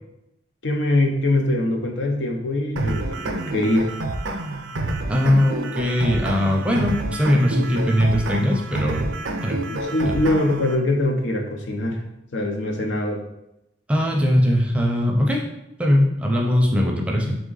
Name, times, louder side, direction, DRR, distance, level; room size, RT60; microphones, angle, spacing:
voice 1, 0.6-3.9 9.7-12.0 12.3-13.2, left 1 dB, 80° left, 2 dB, 0.7 m, -23 dB
sound 1, 2.8-10.8, right 2 dB, 85° right, 0.5 m, -28 dB
voice 2, 5.1-9.1 9.4-9.6 10.0-10.1 13.9-15.4 15.8-17.4, left 1 dB, 5° right, 0 dB, 0.5 m, -20 dB
3.7 x 3.3 x 3.9 m, 0.88 s
head